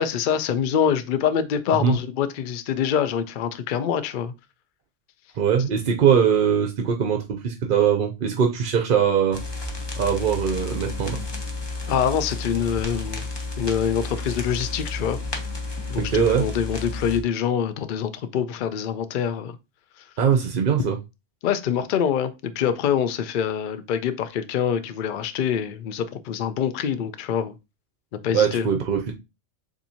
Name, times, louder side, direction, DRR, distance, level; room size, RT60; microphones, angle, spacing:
voice 1, 0.0-4.3 11.9-13.3 13.6-15.2 15.9-19.6 21.4-27.5 28.2-28.7, left 8 dB, 55° left, 0.6 m, -25 dB
voice 2, 5.4-9.4 10.0-11.2 16.0-16.4 20.2-21.0 28.3-29.1, right 7 dB, 55° right, 0.7 m, -21 dB
sound 1, 9.3-17.2, left 3 dB, 25° left, 0.8 m, -32 dB
7.0 x 2.7 x 2.8 m
omnidirectional pair, 1.2 m